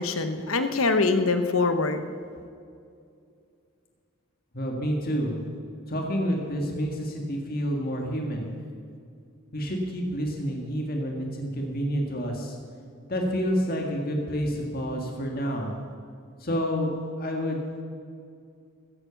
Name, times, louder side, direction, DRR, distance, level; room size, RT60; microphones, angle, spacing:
voice 1, 0.0-2.0, left 3 dB, 80° left, 9 dB, 1.1 m, -24 dB
voice 2, 4.5-5.4 5.9-8.5 9.5-12.6 13.1-15.7 16.4-17.6, equal, 45° left, 1 dB, 1.9 m, -29 dB
14.5 x 10.5 x 7.1 m, 2.4 s
head